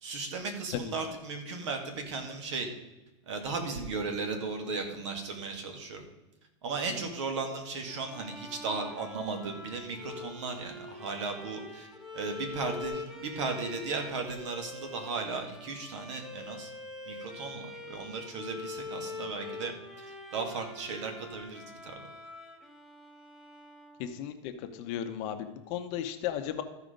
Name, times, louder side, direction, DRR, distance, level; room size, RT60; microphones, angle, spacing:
voice 1, 0.0-2.7 3.3-6.0 6.6-11.9 12.1-16.7 17.1-19.7 20.0-22.0, right 4 dB, 65° right, 5 dB, 2.1 m, -36 dB
Bowed string instrument, 7.8-24.4, left 3 dB, ahead, 0.8 m, -44 dB
voice 2, 24.0-26.6, left 10 dB, 40° left, 7 dB, 0.8 m, -35 dB
14.0 x 4.9 x 5.1 m, 1.0 s
supercardioid pair, 155°, 16 cm